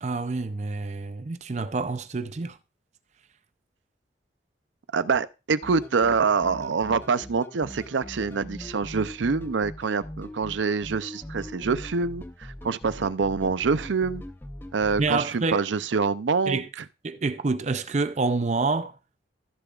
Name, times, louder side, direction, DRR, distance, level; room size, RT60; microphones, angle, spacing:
voice 1, 0.0-2.6 15.0-15.6 16.5-16.7 17.0-19.0, right 3 dB, 40° right, 0.5 m, -27 dB
voice 2, 4.9-14.2 14.7-16.8, right 5 dB, 85° right, 0.5 m, -26 dB
sound 1, 5.6-15.2, left 1 dB, 10° left, 0.6 m, -41 dB
15.0 x 6.9 x 2.4 m
head